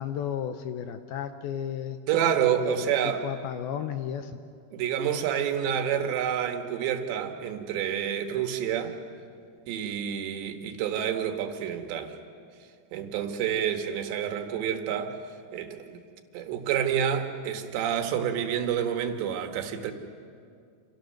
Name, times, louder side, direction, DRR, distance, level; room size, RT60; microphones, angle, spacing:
voice 1, 0.0-2.0 2.6-4.4, left 9 dB, 75° left, 8 dB, 2.4 m, -33 dB
voice 2, 2.1-3.2 4.7-9.0 9.7-12.1 12.9-15.1 15.5-16.0 16.3-19.9, right 9 dB, 80° right, 5 dB, 3.6 m, -28 dB
28.5 x 27.5 x 6.6 m, 2.3 s
omnidirectional pair, 5.0 m